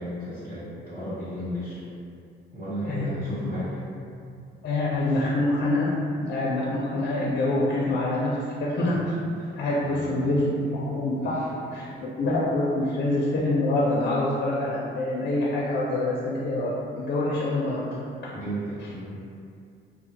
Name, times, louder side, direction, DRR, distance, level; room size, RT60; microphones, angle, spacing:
voice 1, 0.0-1.8 2.5-3.8 9.4-10.4 11.2-11.4 11.8-12.1 18.3-19.1, equal, 60° right, -14 dB, 0.9 m, -35 dB
voice 2, 2.8-3.2 3.4-3.5 4.1-4.4 4.6-5.9 6.2-9.2 9.5-11.4 11.7-17.9, left 2 dB, 60° left, -5 dB, 0.4 m, -26 dB
2.2 x 2.0 x 2.8 m, 2.4 s
cardioid pair, 90°, 20 cm